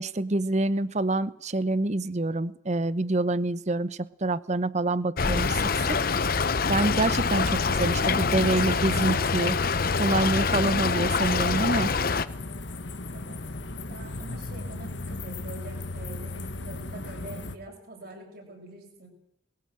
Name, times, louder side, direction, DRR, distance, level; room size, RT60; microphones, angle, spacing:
voice 1, 0.0-6.0 6.7-9.6 10.0-11.9, right 2 dB, 40° right, 17 dB, 0.9 m, -26 dB
Stream / Trickle dribble, 5.2-12.3, left 4 dB, 50° left, 0.9 m, -25 dB
sound 1, 12.3-17.6, left 2 dB, 75° left, 1.6 m, -36 dB
voice 2, 13.1-13.5 13.9-19.1, right 2 dB, 55° right, 1 dB, 7.9 m, -45 dB
21.0 x 17.0 x 7.7 m, 0.74 s
head